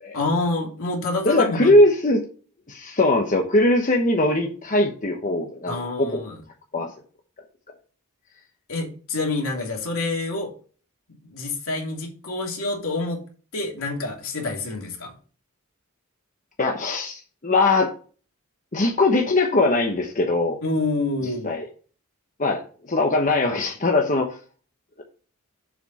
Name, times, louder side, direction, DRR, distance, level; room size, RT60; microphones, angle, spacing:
voice 1, 0.1-1.7 5.7-6.4 8.7-10.5 11.1-13.2 13.5-15.1 20.6-21.5, left 2 dB, 65° left, 0 dB, 2.9 m, -27 dB
voice 2, 1.2-2.2 2.7-6.2 6.7-6.9 16.6-17.9 18.7-20.6 21.4-21.7 22.4-22.6 22.9-24.4, left 2 dB, 35° left, 2 dB, 1.0 m, -20 dB
7.2 x 7.0 x 4.1 m, 0.40 s
head